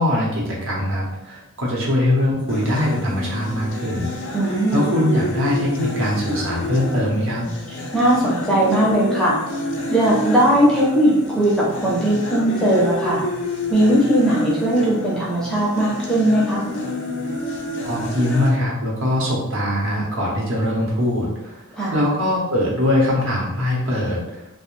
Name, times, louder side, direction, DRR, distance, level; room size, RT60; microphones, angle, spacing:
voice 1, 0.0-4.1 4.4-7.5 17.8-21.6 21.9-24.4, left 1 dB, 65° right, -4 dB, 0.8 m, -22 dB
sound 1, 2.5-18.5, left 1 dB, 55° left, 0.5 m, -29 dB
voice 2, 4.3-4.8 7.7-9.3 9.9-13.2 13.7-16.6 21.7-22.0, right 1 dB, 5° left, -7 dB, 0.5 m, -18 dB
2.5 x 2.0 x 3.0 m, 0.88 s
head